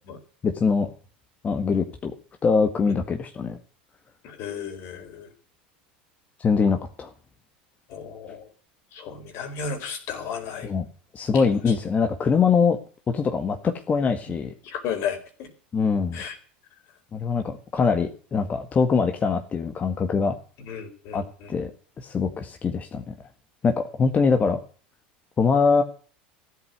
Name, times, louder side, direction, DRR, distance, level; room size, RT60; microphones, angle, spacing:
voice 1, 0.4-0.9 1.4-2.1 2.4-3.6 6.4-7.1 10.6-10.9 11.1-12.8 13.1-14.5 15.7-16.2 17.1-20.3 21.1-21.7 22.0-23.1 23.6-24.6 25.4-25.8, left 5 dB, 30° left, 6 dB, 1.8 m, -23 dB
voice 2, 4.2-5.3 7.9-8.5 8.9-10.7 11.3-11.7 14.6-15.5 16.1-16.4 20.7-21.5, left 7 dB, 55° left, 8 dB, 4.2 m, -34 dB
14.5 x 8.5 x 8.2 m, 0.42 s
hypercardioid pair, 85°, 5 cm